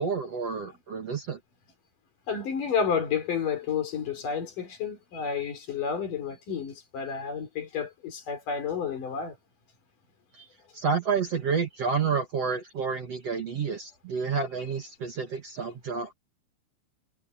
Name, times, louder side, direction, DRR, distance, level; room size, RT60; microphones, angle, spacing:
voice 1, 0.0-1.4 10.7-16.1, right 5 dB, 45° right, 2.7 m, -29 dB
voice 2, 2.3-9.4 10.4-10.5, left 6 dB, 55° left, 5.4 m, -31 dB
omnidirectional pair, 4.6 m